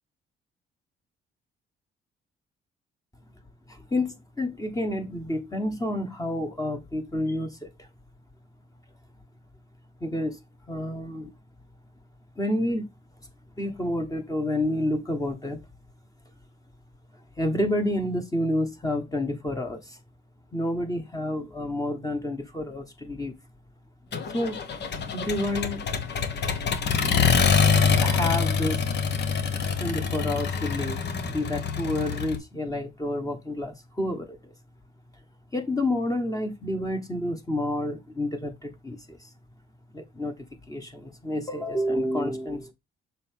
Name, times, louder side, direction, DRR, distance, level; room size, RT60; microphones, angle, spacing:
voice 1, 3.7-7.9 10.0-10.4 10.7-11.3 12.4-12.9 13.6-15.6 17.4-20.0 20.5-23.3 24.3-24.6 25.1-25.8 28.0-28.8 29.8-34.5 35.5-39.3 39.9-40.3 40.7-42.7, left 1 dB, 15° left, 1.3 m, -29 dB
Accelerating revving vroom, 24.1-32.4, left 6 dB, 60° left, 1.2 m, -25 dB
6.8 x 4.5 x 3.6 m
cardioid pair, 90°, 20 cm